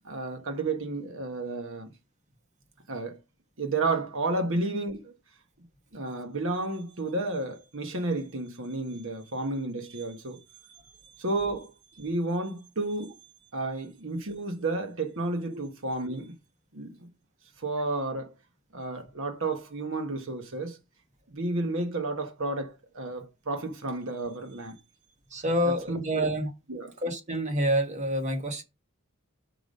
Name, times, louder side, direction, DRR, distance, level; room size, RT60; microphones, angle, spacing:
voice 1, 0.0-1.9 2.9-3.2 3.6-5.1 5.9-10.4 11.0-13.1 13.5-16.3 16.7-17.1 17.6-18.3 18.7-20.8 21.3-24.8 25.6-26.3 26.7-26.9, right 2 dB, 60° right, 1.3 m, -32 dB
voice 2, 25.3-26.5 27.0-28.6, equal, 35° right, 1.4 m, -27 dB
6.0 x 5.1 x 5.3 m
head